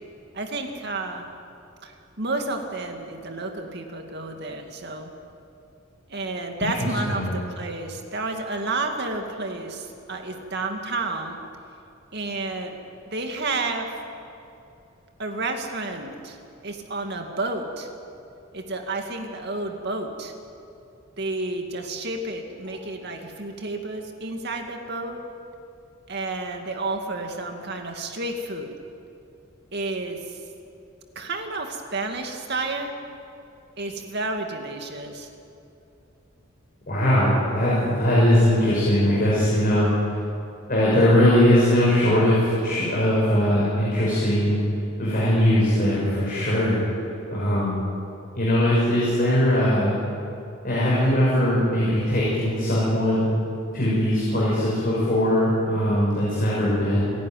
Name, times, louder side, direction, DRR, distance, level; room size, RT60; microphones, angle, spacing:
voice 1, 0.3-1.3 1.8-5.1 6.1-11.4 12.1-12.7 13.1-13.9 15.2-16.4 16.6-17.9 18.5-20.3 21.2-25.2 26.1-28.7 29.7-30.4 31.2-32.9 33.8-35.3, right 2 dB, 55° right, 3 dB, 2.3 m, -31 dB
voice 2, 6.7-7.3 36.9-39.9 40.7-44.6 45.0-46.8 47.3-47.8 48.3-49.9 50.6-53.3 53.7-57.0, left 1 dB, 45° left, -7 dB, 6.3 m, -20 dB
28.0 x 11.0 x 9.4 m, 2.7 s
head